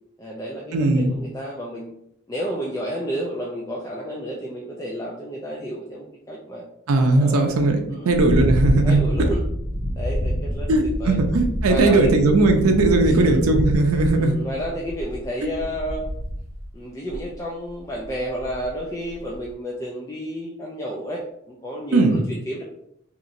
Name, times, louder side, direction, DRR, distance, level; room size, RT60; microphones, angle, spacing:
voice 1, 0.2-1.9 2.3-6.6 7.1-8.2 8.8-9.4 9.9-11.2 11.7-12.1 13.0-13.4 14.2-16.1 16.7-22.6, equal, 15° left, -3 dB, 0.3 m, -31 dB
voice 2, 0.7-1.2 6.9-9.0 10.7-14.4 21.9-22.2, right 2 dB, 90° right, 4 dB, 0.5 m, -18 dB
sound 1, 8.1-16.7 17.1-17.3 17.9-18.8 19.1-19.5, equal, 60° left, 0.6 m, -27 dB
2.9 x 2.8 x 2.5 m, 0.75 s
head